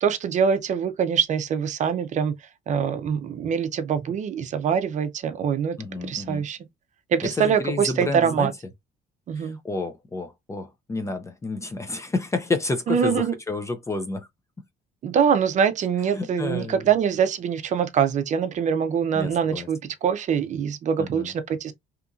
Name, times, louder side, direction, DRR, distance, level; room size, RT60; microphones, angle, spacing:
voice 1, 0.0-2.3 2.7-6.6 7.1-8.5 9.3-9.6 12.9-13.3 15.0-21.7, right 7 dB, 45° right, 0.5 m, -24 dB
voice 2, 5.8-6.4 7.4-8.5 9.4-14.3 16.1-16.8 19.1-19.7 21.0-21.3, left 3 dB, 15° left, 0.4 m, -30 dB
2.9 x 2.5 x 2.3 m
cardioid pair, 110°, 17 cm